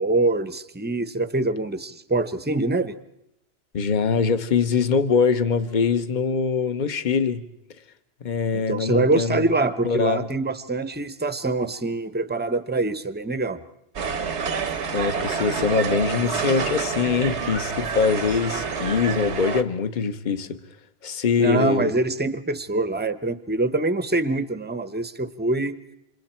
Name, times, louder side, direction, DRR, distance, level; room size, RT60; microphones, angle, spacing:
voice 1, 0.0-3.0 8.5-13.6 21.4-25.7, right 2 dB, 10° right, 12 dB, 0.7 m, -24 dB
voice 2, 3.7-7.4 8.2-9.6 9.8-10.3 14.9-20.6 21.0-21.9, left 5 dB, 45° left, 10 dB, 1.1 m, -23 dB
sound 1, 14.0-19.6, right 6 dB, 85° right, 1.4 m, -28 dB
29.0 x 26.5 x 4.4 m, 0.81 s
omnidirectional pair, 1.1 m